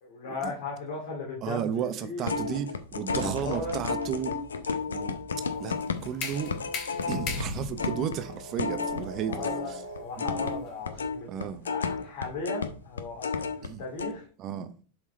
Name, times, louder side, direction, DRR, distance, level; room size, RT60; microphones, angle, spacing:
voice 1, 0.0-2.6 3.1-3.8 5.5-5.7 9.3-13.3 13.8-14.3, left 3 dB, 55° left, 2.2 m, -37 dB
voice 2, 1.4-4.3 4.9-5.2 5.6-5.7 6.0-6.5 7.1-9.8 11.3-11.7 13.6-13.8 14.4-14.7, right 9 dB, 35° right, 0.8 m, -33 dB
sound 1, 2.2-9.7 10.0-13.7 14.0-14.1, left 5 dB, 70° left, 0.8 m, -32 dB
sound 2, 3.1-10.1, right 1 dB, 80° right, 2.3 m, -44 dB
sound 3, 5.5-11.3, left 3 dB, 35° left, 2.0 m, -39 dB
7.4 x 4.7 x 4.3 m
figure-of-eight pair, 90°, 0 cm